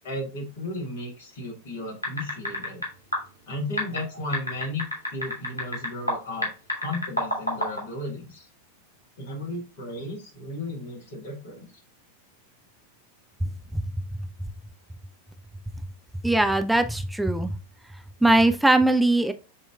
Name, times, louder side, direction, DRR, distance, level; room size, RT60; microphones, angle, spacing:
voice 1, 0.0-2.8 3.5-4.8 5.1-8.5 9.2-11.7, left 1 dB, 55° left, 1.8 m, -34 dB
sound 1, 2.0-2.9 3.1-3.2 3.8-6.2 6.4-7.8, left 1 dB, 80° left, 1.9 m, -27 dB
voice 2, 13.4-13.8 16.2-17.6 18.2-19.3, right 2 dB, 5° right, 0.4 m, -21 dB
7.0 x 2.8 x 2.3 m
figure-of-eight pair, 90°, 0 cm